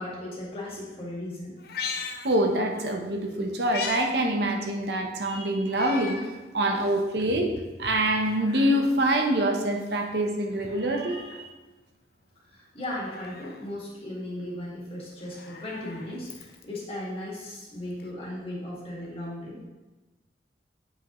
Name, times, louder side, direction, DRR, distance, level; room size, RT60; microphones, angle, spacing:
voice 1, 0.0-1.5 12.5-19.6, left 1 dB, 35° left, -5 dB, 1.9 m, -36 dB
Meow, 1.6-2.9 3.3-4.1 4.5-4.6 5.6-6.3 6.8-6.9 7.9-8.9 10.5-11.5 12.8-13.6 15.1-16.8 18.0-18.1, left 5 dB, 60° left, 0.5 m, -39 dB
voice 2, 2.2-6.2 6.5-7.5 7.8-11.5, right 1 dB, 65° right, 3 dB, 0.8 m, -25 dB
8.2 x 5.1 x 3.0 m, 1.2 s
head